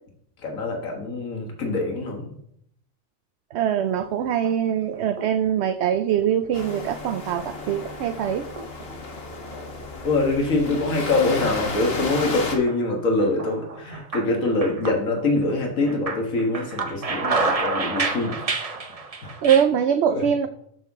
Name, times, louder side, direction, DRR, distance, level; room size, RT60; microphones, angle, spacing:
voice 1, 0.4-2.4 10.0-18.4 19.2-19.4 20.1-20.3, left 2 dB, 75° left, 1 dB, 2.0 m, -24 dB
voice 2, 3.5-8.4 19.4-20.5, right 9 dB, 65° right, 9 dB, 0.7 m, -23 dB
sound 1, 3.8-4.5 4.9-5.5 5.9-6.5 6.9-7.0 7.9-8.9 9.3-10.3 10.7-10.8 11.7-12.3 12.7-12.8 13.2-15.5 15.8-19.6, right 3 dB, 30° right, 0.8 m, -29 dB
sound 2, 6.5-12.5, left 3 dB, 45° left, 1.5 m, -33 dB
13.5 x 5.7 x 3.6 m, 0.72 s
omnidirectional pair, 1.4 m